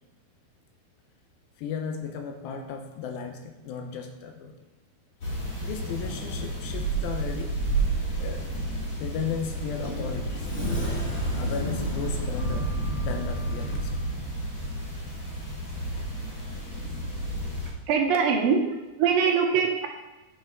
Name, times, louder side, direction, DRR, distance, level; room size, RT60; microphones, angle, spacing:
voice 1, 1.6-4.5 5.6-7.5 8.2-8.5 9.0-10.5 11.3-12.7 13.0-14.0, left 6 dB, 85° left, 4 dB, 2.6 m, -35 dB
sound 1, 5.2-17.7, right 1 dB, 70° left, 0.8 m, -31 dB
Sliding door, 9.4-14.0, right 2 dB, 40° left, 2.5 m, -33 dB
voice 2, 17.9-19.9, right 6 dB, 80° right, 2 dB, 2.3 m, -23 dB
8.9 x 5.2 x 3.6 m, 1.1 s
omnidirectional pair, 4.3 m